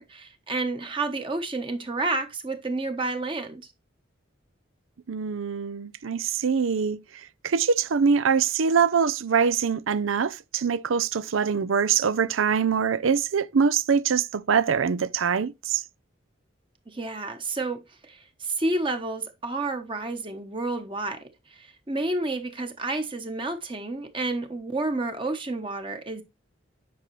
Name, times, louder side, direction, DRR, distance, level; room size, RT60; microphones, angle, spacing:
voice 1, 0.0-3.6 16.9-21.2 21.5-26.2, right 2 dB, 25° right, 1.0 m, -30 dB
voice 2, 5.1-15.8, right 6 dB, 90° right, 0.6 m, -24 dB
9.5 x 5.5 x 3.1 m
head